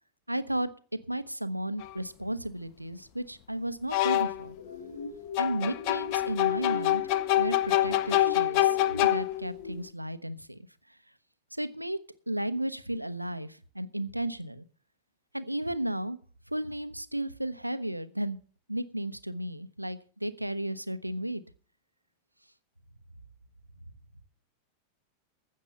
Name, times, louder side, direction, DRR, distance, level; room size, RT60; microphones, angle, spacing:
voice 1, 0.3-0.7 1.1-4.6 5.4-7.0 7.4-11.0 11.5-12.0 12.3-14.6 15.3-16.2 16.5-18.4 18.7-21.4, right 1 dB, 85° right, 13 dB, 0.8 m, -34 dB
sound 1, 1.8-1.9 3.9-4.5 5.4-9.6, left 14 dB, 45° left, 0.7 m, -26 dB
sound 2, 4.6-9.8, left 4 dB, 65° left, 3.1 m, -42 dB
15.0 x 6.6 x 6.7 m, 0.41 s
figure-of-eight pair, 90°, 0 cm